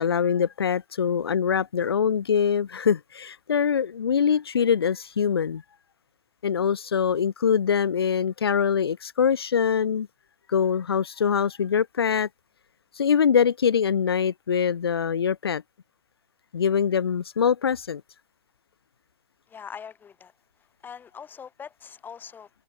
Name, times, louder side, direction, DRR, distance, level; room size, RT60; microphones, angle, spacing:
voice 1, 0.0-5.6 6.4-10.1 10.5-12.3 12.9-15.6 16.5-18.0, left 7 dB, 75° left, 1.3 m, -23 dB
voice 2, 19.5-20.3 20.8-22.5, left 7 dB, 15° left, 5.9 m, -42 dB
hypercardioid pair, 125°, 13 cm